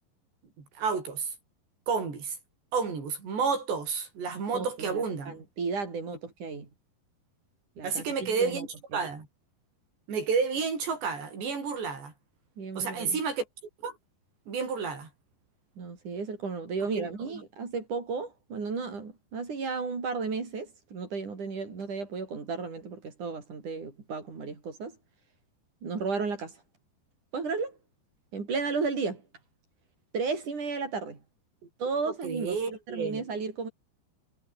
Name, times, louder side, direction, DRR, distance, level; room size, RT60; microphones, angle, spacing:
voice 1, 0.6-1.3 1.9-2.4 2.7-5.4 7.8-8.7 8.9-9.3 10.1-12.1 12.8-13.4 13.8-14.0 14.5-15.1 17.0-17.1 32.1-33.2, right 5 dB, 75° right, 8.5 m, -30 dB
voice 2, 4.5-6.7 7.8-8.7 12.6-13.2 15.8-25.0 25.8-26.5 27.3-27.8 28.3-29.2 30.1-31.2 31.8-33.7, right 4 dB, 45° right, 6.3 m, -34 dB
omnidirectional pair, 5.1 m